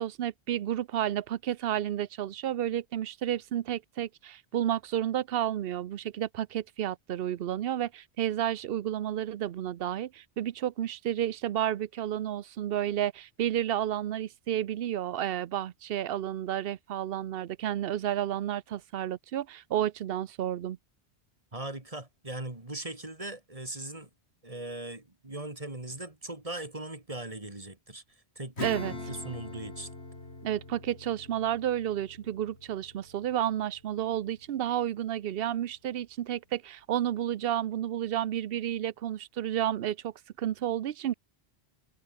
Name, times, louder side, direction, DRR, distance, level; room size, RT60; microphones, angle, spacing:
voice 1, 0.0-20.8 28.6-28.9 30.4-41.1, right 11 dB, 65° right, 0.8 m, -31 dB
voice 2, 21.5-24.1 24.4-28.0 28.4-28.7 29.1-29.9, right 2 dB, 30° right, 3.0 m, -39 dB
Acoustic guitar / Strum, 28.6-34.6, left 2 dB, 70° left, 4.4 m, -42 dB
omnidirectional pair, 1.1 m